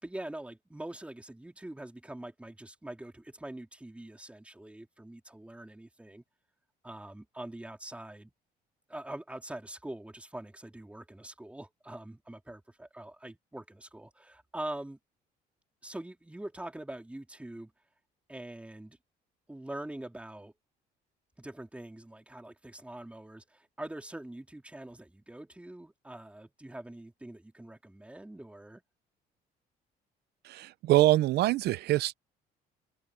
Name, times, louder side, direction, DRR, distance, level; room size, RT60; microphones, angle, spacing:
voice 1, 0.0-6.2 6.8-8.3 8.9-15.0 15.8-17.7 18.3-19.0 19.5-20.5 21.4-28.8, right 1 dB, 5° right, 3.7 m, -44 dB
voice 2, 30.4-32.1, right 16 dB, 75° right, 0.8 m, -24 dB
cardioid pair, 110°, 17 cm